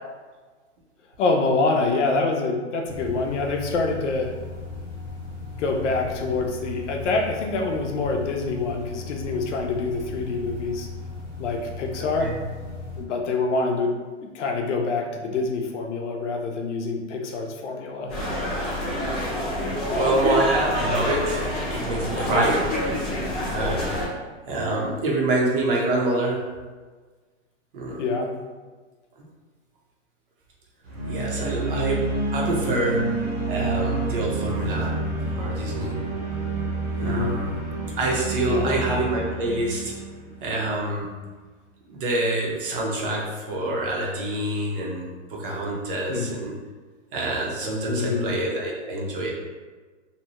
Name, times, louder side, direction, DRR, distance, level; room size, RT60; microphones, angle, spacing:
voice 1, 1.2-4.3 5.6-10.9 11.4-12.3 13.0-18.1 22.2-22.5 28.0-28.3 37.0-37.4 38.5-38.8 46.1-46.3 47.9-48.3, left 3 dB, 70° left, 2 dB, 0.6 m, -26 dB
sound 1, 2.9-13.0, left 3 dB, 5° right, 0.4 m, -37 dB
sound 2, 18.1-24.1, left 1 dB, 15° left, 0.8 m, -27 dB
voice 2, 19.9-21.4 21.7-22.6 23.4-23.8 24.5-26.4 27.7-28.0 31.0-32.0 32.3-33.0 33.5-35.0 35.3-36.0 37.0-37.5 38.0-39.9 40.4-41.3 41.9-46.5 47.1-49.3, right 2 dB, 45° right, -2 dB, 0.7 m, -26 dB
sound 3, 30.8-40.9, right 3 dB, 70° right, 1.1 m, -29 dB
2.7 x 2.2 x 2.9 m, 1.4 s
hypercardioid pair, 150°, 38 cm